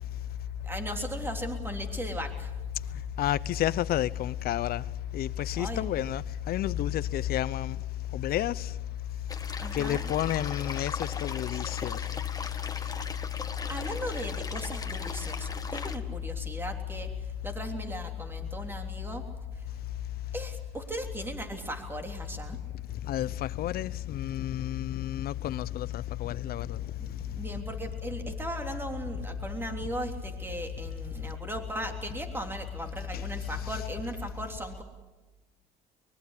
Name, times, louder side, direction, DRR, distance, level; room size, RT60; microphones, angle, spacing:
voice 1, 0.6-2.5 5.6-5.8 9.6-10.0 13.7-19.2 19.6-19.7 20.3-22.6 27.0-34.8, right 1 dB, 15° right, 3.4 m, -37 dB
voice 2, 3.2-4.8 5.1-7.8 8.1-8.7 9.7-12.0 23.1-26.8 27.1-27.2 33.1-33.2 33.6-33.8, left 13 dB, 65° left, 0.8 m, -30 dB
sound 1, 9.3-16.0, left 4 dB, 20° left, 1.6 m, -39 dB
23.5 x 22.0 x 8.4 m
cardioid pair, 110°, 17 cm